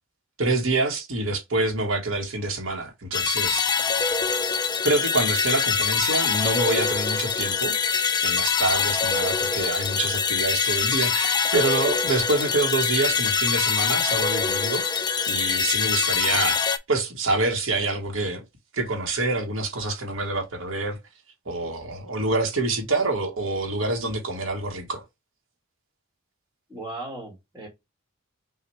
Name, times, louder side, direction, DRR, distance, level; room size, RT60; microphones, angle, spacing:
voice 1, 0.4-3.7 4.8-18.4 18.7-21.0 21.4-25.0, right 2 dB, 70° right, 1.3 m, -26 dB
sound 1, 3.1-16.8, left 6 dB, 20° left, 0.4 m, -24 dB
voice 2, 26.7-27.7, right 2 dB, 10° right, 1.5 m, -37 dB
5.7 x 2.4 x 3.2 m
head